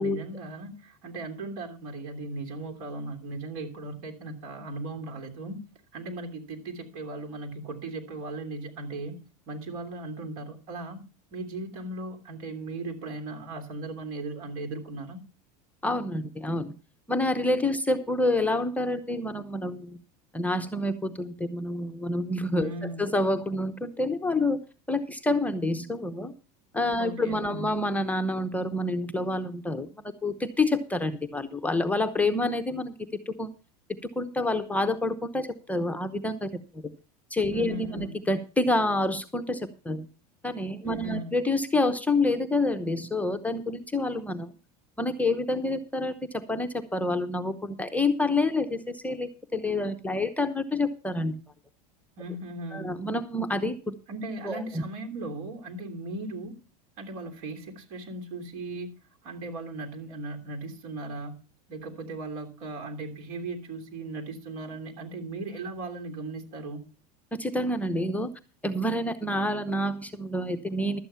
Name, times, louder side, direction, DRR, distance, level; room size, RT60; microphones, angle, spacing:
voice 1, 0.0-5.6 5.9-9.2 9.5-11.0 11.3-15.2 22.6-23.1 27.0-27.7 37.5-38.2 40.8-41.3 52.2-53.0 54.1-56.6 57.0-58.9 59.2-61.4 61.7-66.9, right 2 dB, 65° right, 6 dB, 3.1 m, -37 dB
voice 2, 15.8-16.7 17.1-20.0 20.3-22.7 23.0-24.6 24.9-26.3 26.7-32.9 33.3-33.5 34.2-36.8 37.3-40.1 40.4-44.5 45.0-51.3 52.7-53.9 54.5-54.8 67.3-68.3 68.6-71.0, left 2 dB, 5° left, 7 dB, 0.8 m, -28 dB
12.5 x 8.7 x 5.6 m, 0.34 s
supercardioid pair, 125°, 20 cm